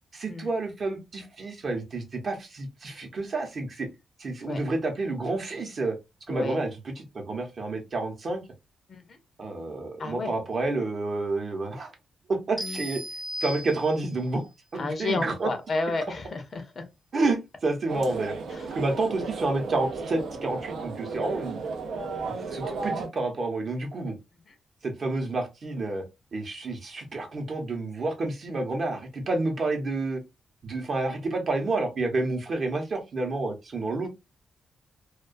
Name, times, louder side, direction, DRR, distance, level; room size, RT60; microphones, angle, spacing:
voice 1, 0.1-3.9 4.2-6.0 6.3-8.4 9.4-11.9 12.3-13.0 13.4-15.5 17.1-18.4 18.7-21.6 22.3-24.2 24.8-26.0 26.3-30.2 30.6-34.1, right 2 dB, 45° right, 0.7 m, -29 dB
voice 2, 6.3-6.6 8.9-9.2 10.0-10.3 12.6-12.8 14.8-16.8 18.5-18.7, left 3 dB, 40° left, 0.5 m, -32 dB
sound 1, 12.6-14.3, equal, 5° right, 0.6 m, -36 dB
sound 2, 17.9-23.1, right 4 dB, 80° right, 0.5 m, -34 dB
2.2 x 2.2 x 2.4 m
wide cardioid pair, 135°, 0 cm